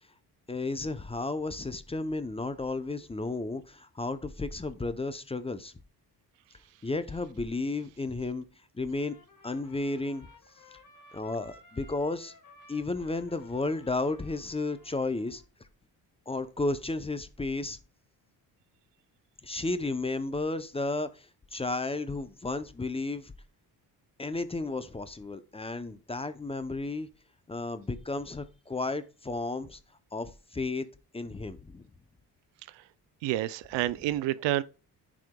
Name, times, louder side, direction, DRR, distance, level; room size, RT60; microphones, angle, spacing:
voice 1, 0.5-5.7 6.8-8.4 8.7-9.2 9.4-10.3 11.1-12.3 12.7-15.4 16.3-17.8 19.4-23.3 24.2-27.1 27.5-29.8 30.1-30.9 31.1-31.9, left 2 dB, 15° left, 0.6 m, -33 dB
Trumpet, 8.9-15.5, left 3 dB, 45° left, 1.5 m, -56 dB
voice 2, 33.2-34.6, right 14 dB, 85° right, 0.5 m, -29 dB
10.5 x 4.9 x 2.2 m
cardioid pair, 80°, 42 cm